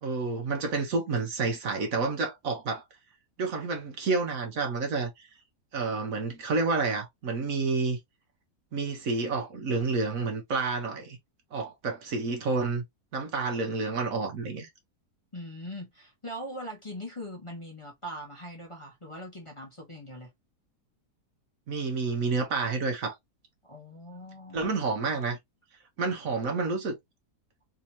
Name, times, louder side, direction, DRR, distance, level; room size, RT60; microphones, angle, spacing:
voice 1, 0.0-2.8 3.4-5.3 5.7-8.0 8.7-11.2 11.5-12.8 13.1-14.7 21.7-23.1 24.5-25.4 26.0-27.0, right 4 dB, 60° right, 1.3 m, -29 dB
voice 2, 15.3-20.3 23.6-24.7, equal, 20° left, 1.0 m, -41 dB
3.6 x 2.8 x 2.8 m
omnidirectional pair, 1.7 m